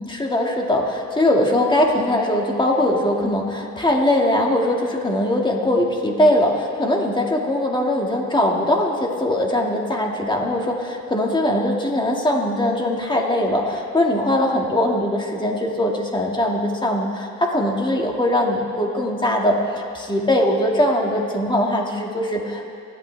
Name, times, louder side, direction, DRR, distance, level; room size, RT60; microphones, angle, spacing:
voice 1, 0.0-22.7, left 1 dB, 15° left, 0 dB, 2.2 m, -21 dB
28.5 x 12.0 x 3.5 m, 2.5 s
cardioid pair, 90°, 30 cm